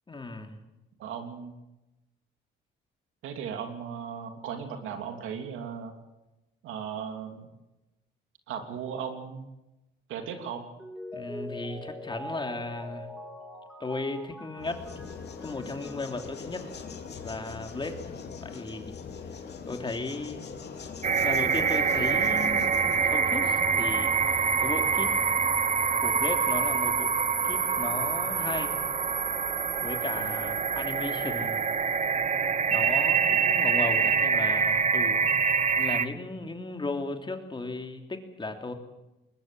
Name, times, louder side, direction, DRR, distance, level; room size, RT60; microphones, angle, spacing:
voice 1, 0.1-0.6 11.1-13.1 13.8-14.9 15.4-16.7 17.2-19.0 19.6-20.5 21.2-25.2 26.0-27.1 27.4-28.8 29.8-31.7 32.7-35.3 35.8-38.7, left 3 dB, 25° left, 4 dB, 3.1 m, -36 dB
voice 2, 1.0-1.5 3.2-5.9 6.6-7.5 8.5-9.5 10.1-10.7 30.2-30.3, right 7 dB, 90° right, 5 dB, 3.0 m, -37 dB
Mallet percussion, 10.8-16.3 16.7-16.8, equal, 5° right, 3.5 m, -43 dB
sound 1, 14.6-23.0, left 6 dB, 55° left, 3.0 m, -41 dB
sound 2, 21.0-36.1, right 6 dB, 35° right, 1.1 m, -25 dB
21.5 x 20.0 x 7.6 m, 0.99 s
cardioid pair, 90°, 20 cm